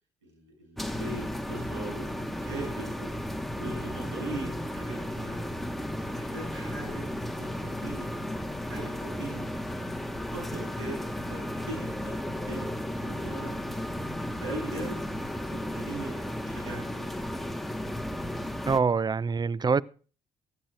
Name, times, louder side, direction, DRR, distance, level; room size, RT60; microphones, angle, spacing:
voice 1, 0.2-3.2 3.6-5.4 6.1-7.0 7.4-8.3 8.7-9.4 10.3-11.0 11.3-11.4 11.7-13.5 14.4-15.0 15.5-17.3, right 2 dB, 85° right, 7.7 m, -40 dB
sound 1, 0.8-18.8, left 1 dB, ahead, 1.5 m, -34 dB
voice 2, 18.7-19.8, right 5 dB, 30° right, 0.5 m, -25 dB
23.5 x 12.0 x 2.6 m
figure-of-eight pair, 40°, 15 cm